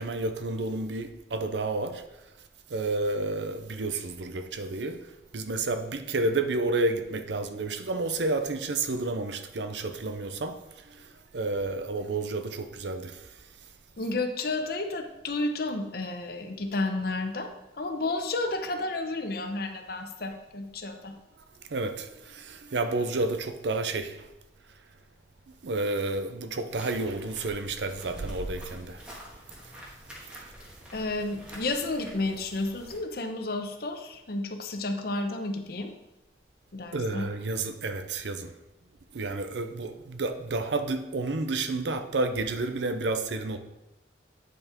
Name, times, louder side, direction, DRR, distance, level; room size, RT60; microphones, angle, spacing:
voice 1, 0.0-2.0 2.7-5.0 5.3-10.6 10.9-11.0 11.3-13.2 21.7-24.2 25.6-29.0 36.9-38.5 39.1-43.6, right 2 dB, 75° right, 9 dB, 0.6 m, -30 dB
voice 2, 14.0-21.1 30.9-35.9 36.7-37.3, left 2 dB, 60° left, 6 dB, 0.8 m, -31 dB
sound 1, 26.7-33.0, equal, 5° right, 1.7 m, -48 dB
8.9 x 5.4 x 3.7 m, 0.95 s
head